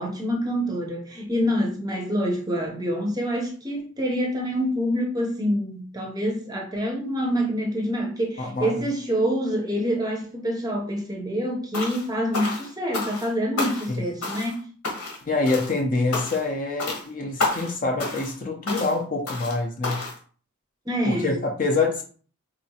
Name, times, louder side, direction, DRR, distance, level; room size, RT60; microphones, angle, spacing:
voice 1, 0.0-14.7 20.9-21.4, equal, 15° right, 0.6 m, -26 dB
voice 2, 8.4-8.8 13.9-14.0 15.2-20.0 21.1-22.0, left 3 dB, 35° left, 0.6 m, -26 dB
sound 1, 11.7-12.1 12.3-13.3 13.6-14.0 14.2-14.6 14.8-15.2 15.5-15.8 16.1-16.5 16.8-17.0 17.4-17.7 18.0-18.4 18.7-18.9 19.3-19.6 19.8-20.2, left 3 dB, 85° left, 1.2 m, -30 dB
4.1 x 2.8 x 2.8 m
head